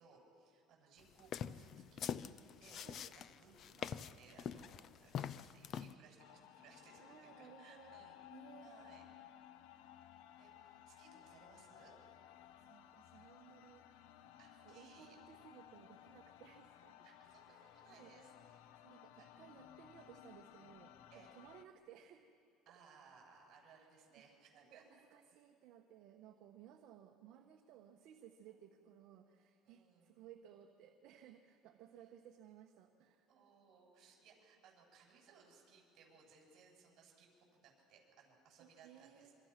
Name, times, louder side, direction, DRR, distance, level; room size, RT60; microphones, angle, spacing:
voice 1, 0.0-2.1 2.6-2.8 3.1-8.2 8.6-9.0 10.4-12.0 14.4-15.2 17.0-18.6 18.9-19.3 21.1-21.3 22.7-24.8 28.5-28.6 29.6-30.1 33.3-39.3, right 5 dB, 45° right, -1 dB, 7.8 m, -64 dB
sound 1, 1.2-5.9, left 8 dB, 40° left, 0.6 m, -44 dB
sound 2, 6.2-21.6, left 11 dB, 80° left, 0.9 m, -59 dB
voice 2, 7.0-8.0 8.3-9.0 12.5-14.1 14.6-17.1 17.5-18.1 18.8-22.3 23.7-23.9 24.7-33.3 38.6-39.3, right 10 dB, 60° right, 3 dB, 1.3 m, -60 dB
26.0 x 25.5 x 6.0 m, 2.4 s
cardioid pair, 150°, 0 cm